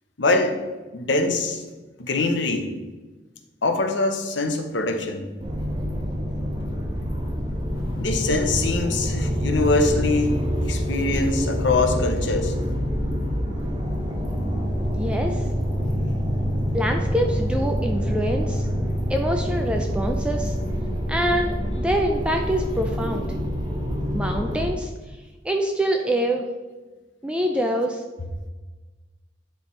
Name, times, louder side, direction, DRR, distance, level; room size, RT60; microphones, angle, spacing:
voice 1, 0.2-0.6 0.9-1.6 2.0-2.7 3.6-5.2 8.0-12.5, left 2 dB, 70° left, 5 dB, 0.8 m, -23 dB
sound 1, 5.4-24.7, equal, 25° right, 1.2 m, -26 dB
sound 2, 7.7-21.8, equal, 45° left, 1.3 m, -38 dB
voice 2, 14.9-15.4 16.7-18.6 19.1-20.6 21.1-23.3 24.1-24.9 25.4-26.5 27.2-28.0, right 1 dB, 5° right, 2 dB, 0.4 m, -25 dB
9.7 x 3.4 x 4.4 m, 1.2 s
head